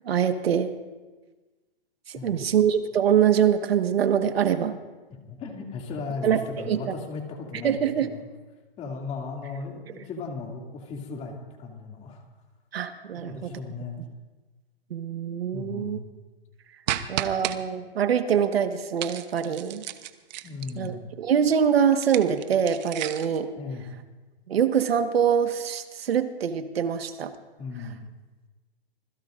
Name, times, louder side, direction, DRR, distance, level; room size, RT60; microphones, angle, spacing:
voice 1, 0.0-0.7 2.1-4.8 6.2-6.8 7.6-8.1 12.7-13.6 14.9-16.0 17.1-19.8 20.7-23.5 24.5-27.3, right 8 dB, 90° right, 7 dB, 1.6 m, -24 dB
voice 2, 2.1-2.5 5.1-8.2 8.8-12.2 13.2-14.0 15.5-16.0 20.4-21.0 23.6-23.9 27.6-28.0, left 4 dB, 20° left, 0 dB, 2.7 m, -36 dB
sound 1, 16.9-17.6 19.0-20.9 21.9-23.4, right 12 dB, 50° right, 1.1 m, -33 dB
26.5 x 20.5 x 2.6 m, 1.3 s
hypercardioid pair, 150°, 29 cm